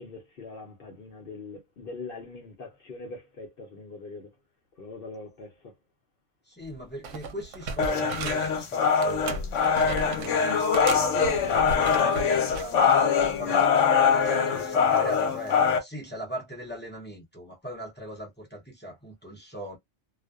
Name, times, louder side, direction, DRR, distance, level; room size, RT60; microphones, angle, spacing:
voice 1, 0.0-4.3 4.8-5.7, left 3 dB, 55° left, 0.8 m, -42 dB
voice 2, 6.5-12.8 13.3-19.8, equal, 15° left, 0.5 m, -40 dB
sound 1, 6.6-6.8 7.0-8.6 9.0-10.4 10.7-12.7 13.2-13.4, right 3 dB, 90° right, 0.9 m, -36 dB
sound 2, 7.8-15.8, left 6 dB, 85° left, 1.1 m, -23 dB
2.5 x 2.1 x 2.3 m
omnidirectional pair, 1.2 m